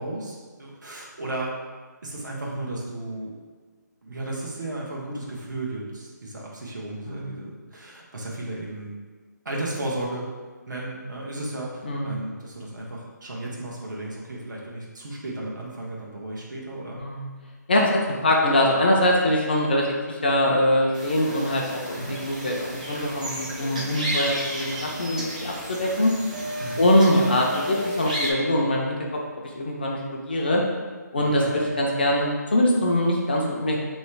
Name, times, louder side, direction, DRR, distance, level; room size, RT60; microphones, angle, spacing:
voice 1, 0.0-1.5 2.0-3.3 4.0-8.9 9.4-10.3 10.7-17.0 21.9-22.1 26.6-26.9 31.4-31.7, right 1 dB, 75° right, -4 dB, 1.2 m, -34 dB
voice 2, 11.8-12.2 17.0-17.3 17.7-26.1 26.8-29.2 29.6-30.6 31.1-33.8, left 1 dB, 30° left, -1 dB, 0.5 m, -23 dB
sound 1, 20.9-28.3, right 1 dB, 25° right, 0.4 m, -34 dB
sound 2, 26.3-29.3 31.2-32.2, left 1 dB, 55° right, 1.5 m, -34 dB
3.1 x 2.9 x 4.5 m, 1.4 s
hypercardioid pair, 175°, 10 cm